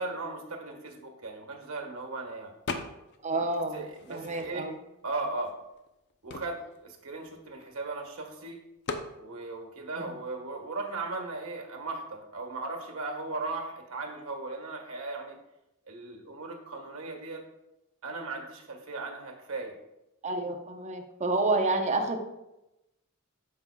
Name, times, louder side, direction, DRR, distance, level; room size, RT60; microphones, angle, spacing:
voice 1, 0.0-2.5 3.7-4.7 5.0-5.5 6.2-8.6 9.2-15.4 15.9-17.4 18.0-19.8, right 3 dB, 75° right, 2 dB, 1.6 m, -37 dB
sound 1, 2.7-3.2 3.6-4.8 5.5-5.6 5.8-8.0 8.9-9.2, left 3 dB, 55° left, 0.7 m, -39 dB
voice 2, 3.2-4.7 9.9-10.1 20.2-22.2, right 2 dB, 35° right, 4 dB, 0.9 m, -29 dB
13.0 x 5.5 x 2.4 m, 0.92 s
head